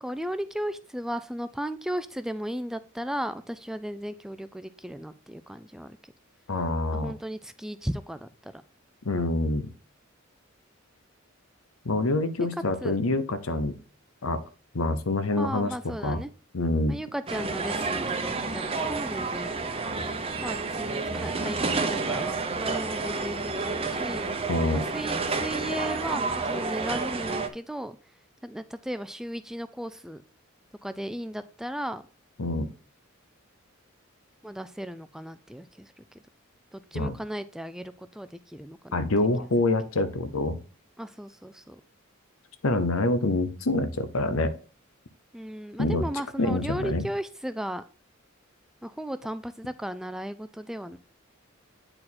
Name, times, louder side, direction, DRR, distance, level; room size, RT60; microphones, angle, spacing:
voice 1, 0.0-6.1 6.9-8.6 12.8-13.0 15.4-16.3 16.9-19.6 20.4-24.3 24.9-28.0 28.4-30.2 30.8-32.0 34.4-36.2 36.7-39.0 41.0-41.8 45.3-47.8 48.8-51.0, equal, ahead, 11 dB, 0.3 m, -35 dB
voice 2, 6.5-7.1 9.0-9.7 11.8-13.8 14.2-14.4 14.7-15.7 16.0-16.2 16.5-17.0 24.5-24.8 32.4-32.7 36.9-37.1 38.9-40.6 42.6-44.5 45.8-46.0 46.4-47.0, left 2 dB, 80° left, 12 dB, 0.8 m, -26 dB
sound 1, 17.3-27.5, right 3 dB, 30° right, 0.8 m, -30 dB
8.9 x 4.4 x 4.2 m, 0.37 s
head